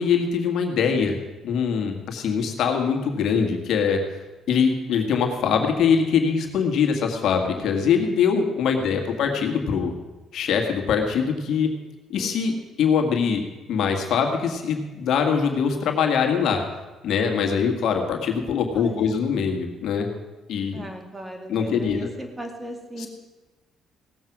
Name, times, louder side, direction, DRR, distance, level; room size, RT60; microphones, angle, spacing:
voice 1, 0.0-1.2 1.4-4.2 4.5-9.9 10.3-11.7 12.1-13.4 13.7-16.6 17.0-20.1 20.5-20.8 21.5-22.1 23.0-23.1, left 6 dB, 70° left, 3 dB, 1.9 m, -23 dB
voice 2, 1.0-1.3 8.8-9.4 12.1-12.6 18.7-19.2 20.7-23.1, right 1 dB, 15° right, 4 dB, 2.2 m, -38 dB
17.5 x 7.7 x 6.0 m, 1.2 s
cardioid pair, 85°, 0 cm